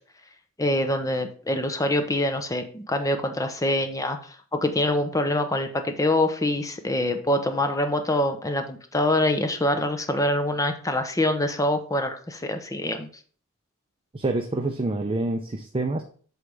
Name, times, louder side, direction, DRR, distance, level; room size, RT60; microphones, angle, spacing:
voice 1, 0.6-13.1, left 1 dB, 15° left, 7 dB, 0.8 m, -25 dB
voice 2, 14.1-16.0, right 2 dB, 25° right, 4 dB, 0.6 m, -27 dB
8.0 x 3.4 x 5.5 m, 0.43 s
head